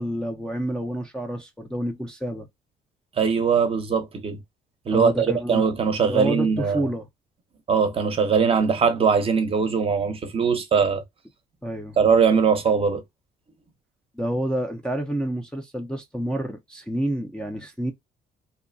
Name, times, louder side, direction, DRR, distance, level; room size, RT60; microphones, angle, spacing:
voice 1, 0.0-2.5 4.9-5.7 6.0-7.1 11.6-12.0 14.1-17.9, equal, 5° left, 0.5 m, -28 dB
voice 2, 3.2-4.4 4.9-6.9 7.7-11.0 12.0-13.0, right 6 dB, 35° right, 0.7 m, -21 dB
2.7 x 2.1 x 2.5 m
cardioid pair, 110°, 17 cm